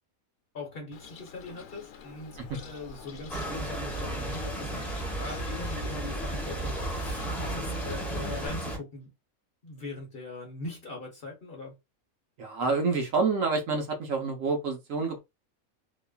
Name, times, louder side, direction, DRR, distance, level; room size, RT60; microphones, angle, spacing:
voice 1, 0.5-4.8 5.1-9.1 9.6-11.7, left 2 dB, 45° left, 1.0 m, -41 dB
Bird, 0.9-8.5, left 7 dB, 90° left, 1.1 m, -46 dB
sound 1, 3.3-8.8, right 1 dB, ahead, 0.7 m, -33 dB
voice 2, 12.4-15.2, right 4 dB, 70° right, 1.1 m, -28 dB
2.9 x 2.4 x 2.3 m
omnidirectional pair, 1.5 m